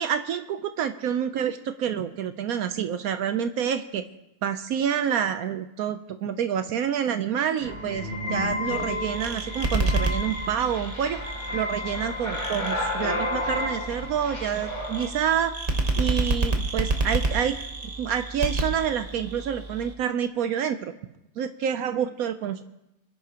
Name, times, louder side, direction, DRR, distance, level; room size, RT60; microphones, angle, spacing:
voice 1, 0.0-4.0 4.4-11.2 11.5-15.6 16.0-17.6 18.0-20.9 21.4-22.6, right 8 dB, 75° right, 9 dB, 1.1 m, -28 dB
sound 1, 7.6-15.1, left 2 dB, 65° left, 3.1 m, -31 dB
sound 2, 8.7-19.9, right 2 dB, 30° right, 1.1 m, -30 dB
26.0 x 10.5 x 2.9 m, 0.88 s
omnidirectional pair, 1.6 m